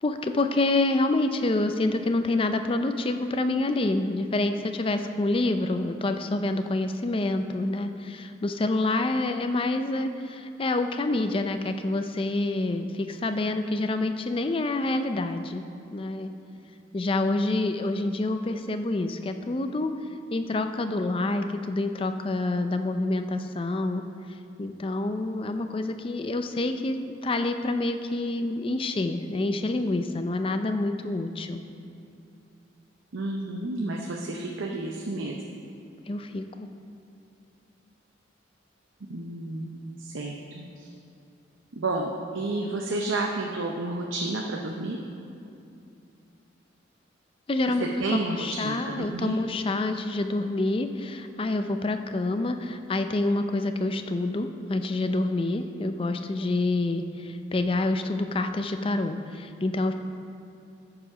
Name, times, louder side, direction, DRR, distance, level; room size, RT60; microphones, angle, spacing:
voice 1, 0.0-15.6 15.9-16.3 16.9-19.9 20.3-24.1 24.6-31.6 36.1-36.7 47.5-59.9, left 2 dB, 30° left, 7 dB, 0.4 m, -27 dB
voice 2, 33.1-35.4 39.1-40.9 41.7-45.0 47.6-47.7 48.0-49.4, right 2 dB, 90° right, 0 dB, 0.7 m, -31 dB
13.5 x 4.9 x 4.9 m, 2.6 s
head